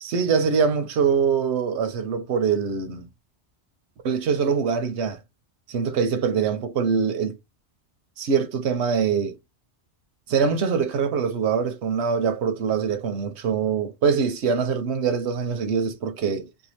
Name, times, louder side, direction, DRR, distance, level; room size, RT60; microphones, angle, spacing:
voice 1, 0.0-3.1 4.0-5.2 5.7-7.4 8.2-9.4 10.3-16.5, right 6 dB, 75° right, 0.9 m, -23 dB
2.7 x 2.2 x 2.9 m
omnidirectional pair, 1.2 m